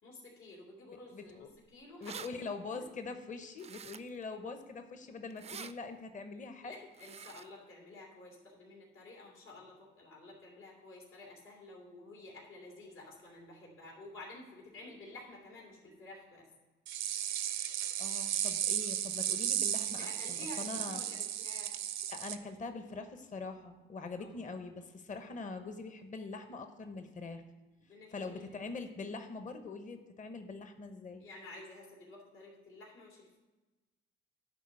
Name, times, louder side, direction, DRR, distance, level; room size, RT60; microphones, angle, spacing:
voice 1, 0.0-2.8 6.6-16.4 19.9-21.8 24.2-24.3 27.9-28.4 31.2-33.4, left 2 dB, 85° left, -4 dB, 3.0 m, -51 dB
voice 2, 0.8-1.5 2.0-6.8 18.0-21.0 22.1-27.4 28.1-31.2, left 3 dB, 40° left, 7 dB, 0.9 m, -43 dB
sound 1, 1.6-1.7 1.8-2.3 3.6-4.2 5.3-5.7 6.9-7.5, right 7 dB, 30° right, 0.4 m, -46 dB
sound 2, 16.9-22.4, right 10 dB, 75° right, 0.6 m, -35 dB
11.0 x 4.1 x 7.7 m, 1.2 s
cardioid pair, 90°, 20 cm